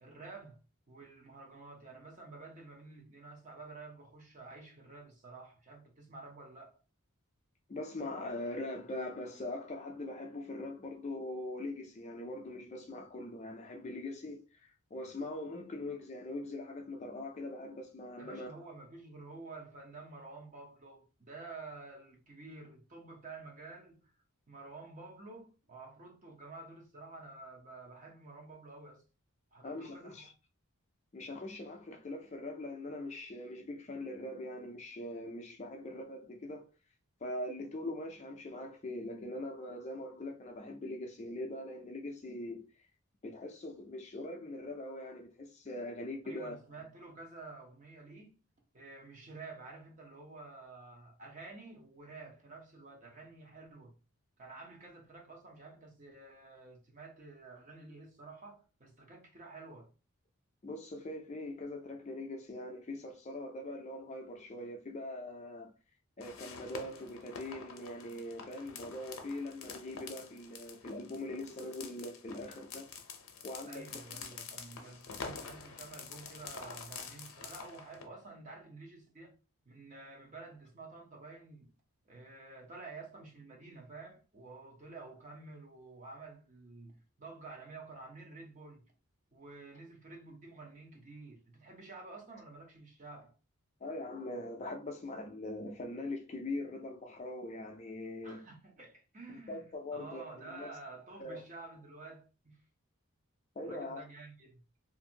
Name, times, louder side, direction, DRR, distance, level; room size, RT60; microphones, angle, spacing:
voice 1, 0.0-0.6 0.9-6.8 18.2-24.1 24.5-29.0 29.5-30.3 46.2-48.4 48.7-53.9 54.4-59.9 73.7-79.3 79.7-81.7 82.1-88.9 89.3-93.3 98.2-99.6 99.9-102.6 103.6-104.6, right 3 dB, 35° right, 0.7 m, -50 dB
voice 2, 7.7-18.5 29.6-30.3 31.1-36.7 37.2-42.6 43.2-46.6 60.6-65.7 66.2-72.8 73.4-74.1 74.4-74.6 93.8-98.4 99.3-100.7 101.2-101.4 103.6-104.0, left 1 dB, 30° left, 0.4 m, -42 dB
sound 1, 66.2-78.1, left 5 dB, 75° left, 0.6 m, -47 dB
2.5 x 2.5 x 2.7 m
head